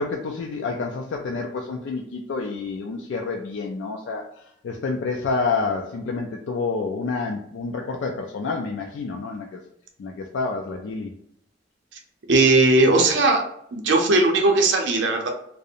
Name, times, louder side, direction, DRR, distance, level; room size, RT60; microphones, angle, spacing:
voice 1, 0.0-9.6 10.0-11.1, left 4 dB, 85° left, 1 dB, 0.3 m, -28 dB
voice 2, 12.3-13.4 13.7-15.3, right 2 dB, 80° right, 2 dB, 0.5 m, -18 dB
2.4 x 2.0 x 2.7 m, 0.71 s
head